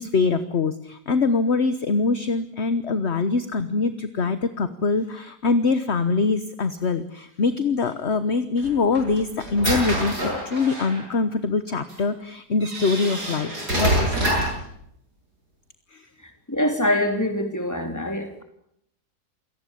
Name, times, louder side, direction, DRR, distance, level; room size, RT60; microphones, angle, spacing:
voice 1, 0.0-14.3 15.9-16.0, left 4 dB, 45° left, 12 dB, 1.4 m, -24 dB
sound 1, 8.6-11.0 11.9-12.0 12.6-14.6, right 1 dB, 80° right, 8.3 m, -26 dB
voice 2, 16.5-18.4, left 1 dB, 10° left, 5 dB, 3.8 m, -24 dB
28.0 x 18.5 x 8.6 m, 0.73 s
omnidirectional pair, 1.7 m